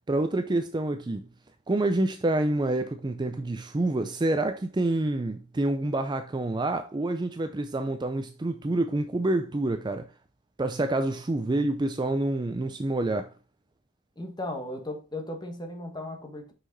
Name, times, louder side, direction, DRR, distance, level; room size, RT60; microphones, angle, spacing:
voice 1, 0.1-1.3 1.7-10.1 10.6-13.3, right 2 dB, 20° right, 0.4 m, -27 dB
voice 2, 14.2-16.5, left 1 dB, 20° left, 1.4 m, -36 dB
5.8 x 5.5 x 4.0 m
head